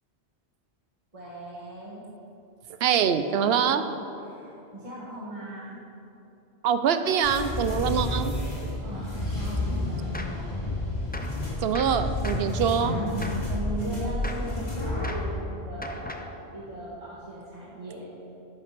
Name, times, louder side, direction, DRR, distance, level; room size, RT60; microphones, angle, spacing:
voice 1, 1.1-2.0 4.2-5.8 8.8-10.7 12.9-18.1, right 1 dB, 30° right, -7 dB, 1.7 m, -38 dB
voice 2, 2.8-3.8 6.6-8.3 11.6-12.9, right 7 dB, 70° right, 10 dB, 0.8 m, -24 dB
sound 1, 7.2-15.2, left 1 dB, 40° left, 2.6 m, -30 dB
Gunshot gunfire, 10.1-10.5 11.1-11.4 11.7-12.5 13.2-13.5 14.2-14.5 15.0-15.3 15.8-16.4, left 2 dB, 15° left, 0.3 m, -38 dB
11.0 x 5.8 x 6.0 m, 2.8 s
omnidirectional pair, 1.1 m